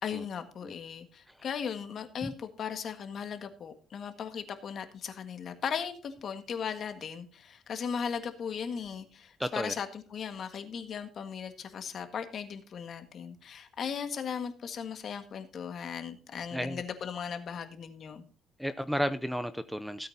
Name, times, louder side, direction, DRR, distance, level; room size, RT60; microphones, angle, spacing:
voice 1, 0.0-18.2, left 7 dB, 50° left, 8 dB, 1.6 m, -37 dB
voice 2, 9.4-9.7 16.5-16.8 18.6-20.1, equal, ahead, 12 dB, 0.5 m, -32 dB
16.5 x 8.6 x 2.8 m, 0.36 s
cardioid pair, 130°, 0 cm